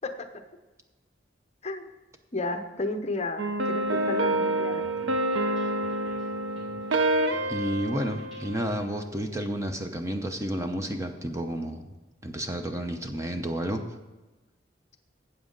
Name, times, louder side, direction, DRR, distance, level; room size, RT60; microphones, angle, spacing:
voice 1, 2.3-4.9, left 2 dB, 35° left, 7 dB, 0.7 m, -32 dB
sound 1, 3.4-9.0, right 1 dB, 85° right, 0.7 m, -28 dB
sound 2, 3.8-8.9, equal, ahead, 4.2 m, -53 dB
voice 2, 7.5-11.9 12.2-13.8, right 1 dB, 15° right, 5 dB, 0.6 m, -31 dB
12.5 x 8.1 x 3.9 m, 1.1 s
head